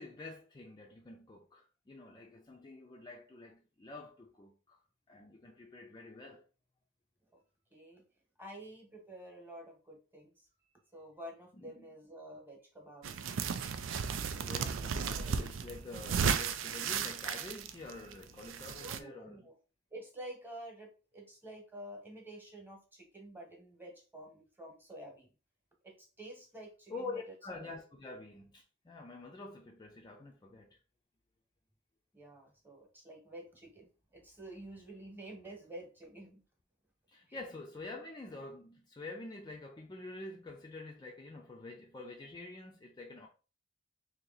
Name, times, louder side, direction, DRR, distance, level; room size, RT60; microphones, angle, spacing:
voice 1, 0.0-4.8 5.1-6.4 11.6-11.9 14.4-19.5 26.9-30.8 37.1-43.3, left 2 dB, 20° left, 0.4 m, -47 dB
voice 2, 7.7-8.0 8.4-10.5 10.9-13.1 14.3-15.4 18.8-19.5 19.9-25.3 25.8-27.2 32.1-36.4, right 1 dB, 10° right, 1.1 m, -49 dB
sound 1, 13.0-19.0, right 6 dB, 80° right, 0.4 m, -35 dB
2.8 x 2.8 x 3.9 m
head